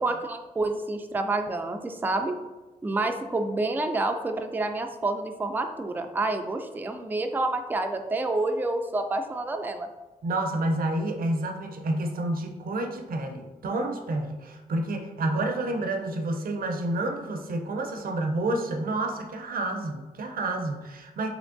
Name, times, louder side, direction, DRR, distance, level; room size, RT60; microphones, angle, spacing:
voice 1, 0.0-2.4 2.8-9.9, right 2 dB, 10° right, 5 dB, 0.3 m, -28 dB
voice 2, 10.2-21.3, right 2 dB, 65° right, 4 dB, 0.5 m, -29 dB
3.4 x 3.0 x 2.5 m, 1.1 s
cardioid pair, 50°, 16 cm